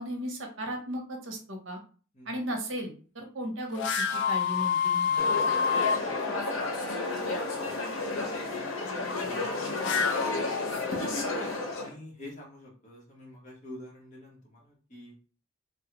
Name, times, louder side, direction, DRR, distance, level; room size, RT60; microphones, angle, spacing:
voice 1, 0.0-1.8 2.3-5.4, equal, 65° right, 2 dB, 0.8 m, -36 dB
sound 1, 3.7-6.0 9.6-11.3, left 6 dB, 60° left, 0.4 m, -28 dB
sound 2, 5.2-11.9, left 2 dB, 90° left, 0.7 m, -32 dB
voice 2, 8.4-11.1 11.7-15.1, left 1 dB, 35° left, -2 dB, 1.1 m, -48 dB
3.2 x 2.3 x 2.9 m, 0.39 s
head